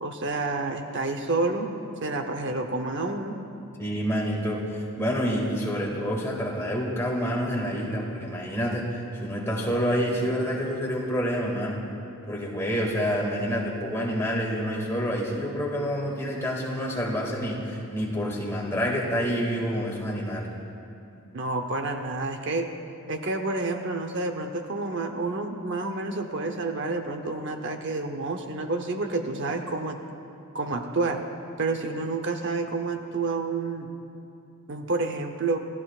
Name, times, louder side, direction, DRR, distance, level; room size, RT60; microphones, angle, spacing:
voice 1, 0.0-1.7 2.0-3.3 21.3-22.7 23.1-30.0 30.5-31.2 31.6-33.9 34.7-35.6, right 3 dB, 55° right, 5 dB, 0.8 m, -29 dB
voice 2, 3.8-11.8 12.3-20.5, equal, 10° left, -3 dB, 2.1 m, -28 dB
28.5 x 14.5 x 2.4 m, 2.6 s
head